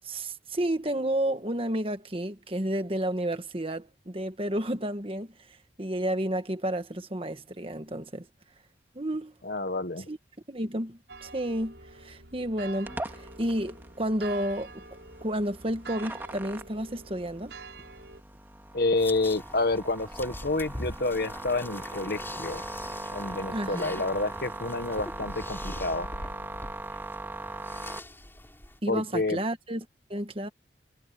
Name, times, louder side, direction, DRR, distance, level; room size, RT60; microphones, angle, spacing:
voice 1, 0.0-8.3 8.9-9.4 10.0-10.2 10.5-14.8 15.2-17.6 23.5-24.0 28.8-30.5, right 1 dB, 30° right, 1.5 m, -31 dB
voice 2, 9.4-10.1 18.7-22.6 23.1-26.1 28.9-29.4, left 2 dB, 60° left, 1.6 m, -29 dB
sound 1, 11.1-18.2, right 4 dB, 80° right, 6.7 m, -46 dB
sound 2, 12.9-28.0, right 2 dB, 10° right, 2.2 m, -40 dB
sound 3, 19.0-28.8, left 1 dB, 15° left, 5.5 m, -43 dB
head